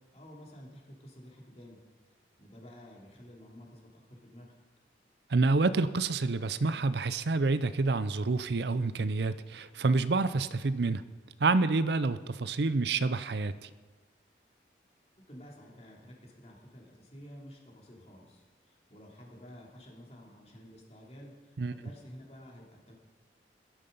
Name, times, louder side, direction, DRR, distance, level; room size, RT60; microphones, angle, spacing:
voice 1, 0.1-1.8 2.4-4.5 15.3-22.9, equal, 35° left, -2 dB, 3.1 m, -51 dB
voice 2, 5.3-11.0 11.4-13.7 21.6-21.7, right 3 dB, 65° right, 14 dB, 0.6 m, -28 dB
16.5 x 12.5 x 5.4 m, 1.4 s
head